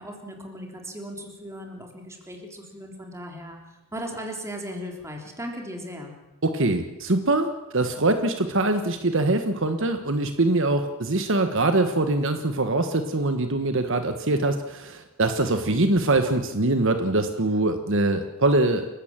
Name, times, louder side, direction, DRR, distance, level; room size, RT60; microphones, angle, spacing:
voice 1, 0.0-3.6 3.9-6.1, equal, 15° right, 2 dB, 3.7 m, -37 dB
voice 2, 6.4-18.9, right 2 dB, 60° right, 8 dB, 1.4 m, -23 dB
28.5 x 16.0 x 7.5 m, 1.0 s
head